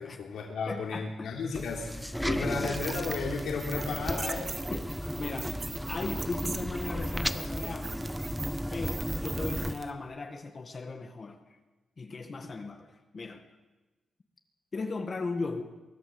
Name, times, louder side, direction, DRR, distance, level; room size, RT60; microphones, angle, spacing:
voice 1, 0.0-4.6, left 4 dB, 85° left, 0 dB, 3.3 m, -34 dB
voice 2, 0.7-1.3 2.2-2.7 4.7-8.0 8.7-11.4 12.0-13.4 14.7-15.6, left 3 dB, 35° left, 6 dB, 1.8 m, -37 dB
sound 1, 1.5-9.7, equal, ahead, 0.9 m, -34 dB
sound 2, 2.7-9.9, right 4 dB, 35° right, 1.4 m, -41 dB
24.0 x 17.0 x 7.9 m, 1.1 s
wide cardioid pair, 150°, 0 cm